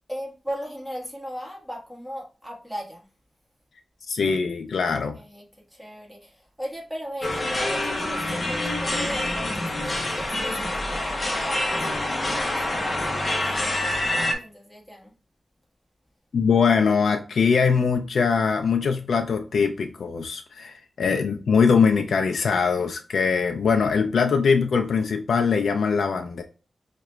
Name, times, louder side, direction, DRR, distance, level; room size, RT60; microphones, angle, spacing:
voice 1, 0.1-3.1 4.8-15.1, equal, ahead, 1.2 m, -38 dB
voice 2, 4.1-5.2 16.3-26.4, left 5 dB, 85° left, 0.3 m, -22 dB
sound 1, 7.2-14.3, left 1 dB, 30° left, 0.7 m, -26 dB
4.7 x 2.2 x 3.0 m
wide cardioid pair, 150°, 0 cm